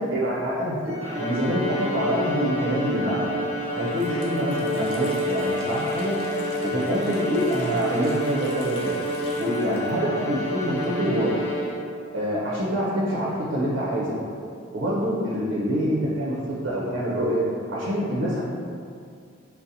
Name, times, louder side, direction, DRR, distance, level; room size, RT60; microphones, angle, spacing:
voice 1, 0.0-3.2 3.7-6.2 6.6-9.0 9.4-11.4 12.1-14.2 14.7-17.4 17.7-18.4, equal, 70° right, -6 dB, 0.5 m, -26 dB
Organ, 0.8-11.4, left 2 dB, 65° left, 1.1 m, -39 dB
Bowed string instrument, 1.0-12.0, equal, 80° left, 0.8 m, -29 dB
Water tap faucet, 3.6-11.3 11.5-11.6 12.5-14.0, left 2 dB, 30° left, 0.4 m, -47 dB
2.7 x 2.0 x 3.9 m, 2.3 s
head